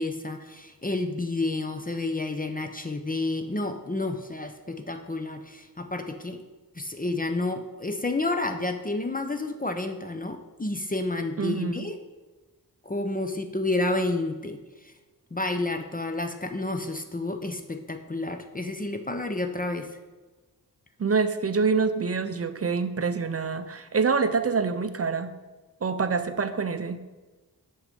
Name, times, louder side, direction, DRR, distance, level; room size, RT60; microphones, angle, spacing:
voice 1, 0.0-6.4 6.7-12.0 12.8-14.9 15.3-20.0, left 2 dB, 20° left, 6 dB, 0.6 m, -30 dB
voice 2, 11.4-11.9 21.0-25.4 25.8-27.0, right 5 dB, 40° right, 10 dB, 0.5 m, -26 dB
6.4 x 6.2 x 5.1 m, 1.2 s
wide cardioid pair, 65°, 38 cm